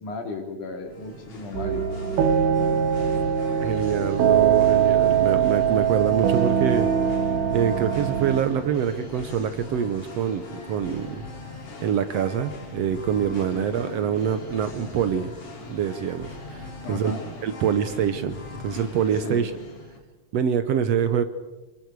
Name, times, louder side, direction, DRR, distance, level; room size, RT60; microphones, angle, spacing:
voice 1, 0.0-1.9 13.5-13.8 16.5-17.3 18.7-18.8 19.2-19.5, left 3 dB, 80° left, 3 dB, 4.1 m, -35 dB
Singing, 0.8-20.0, left 3 dB, 50° left, 3.6 m, -40 dB
sound 1, 1.5-8.4, right 8 dB, 85° right, 2.6 m, -22 dB
voice 2, 3.6-6.9 7.5-11.1 11.8-15.3 15.7-17.1 17.4-18.4 18.6-19.5 20.3-21.2, right 8 dB, 65° right, 10 dB, 1.8 m, -25 dB
28.0 x 24.0 x 4.8 m, 1.2 s
omnidirectional pair, 3.5 m